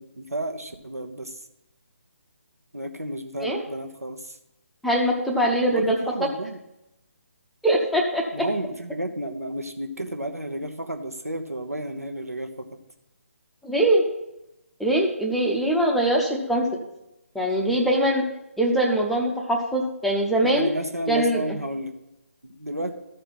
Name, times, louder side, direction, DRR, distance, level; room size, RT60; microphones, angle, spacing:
voice 1, 0.0-1.3 2.7-4.3 5.7-6.6 8.3-12.7 20.4-21.9 22.4-22.9, right 1 dB, 80° right, 5 dB, 1.1 m, -32 dB
voice 2, 4.8-6.3 7.6-8.4 13.6-14.0 14.8-16.7 17.3-18.2 18.6-20.7 21.1-21.6, right 1 dB, ahead, -1 dB, 0.6 m, -22 dB
13.0 x 4.5 x 5.7 m, 0.88 s
figure-of-eight pair, 145°, 8 cm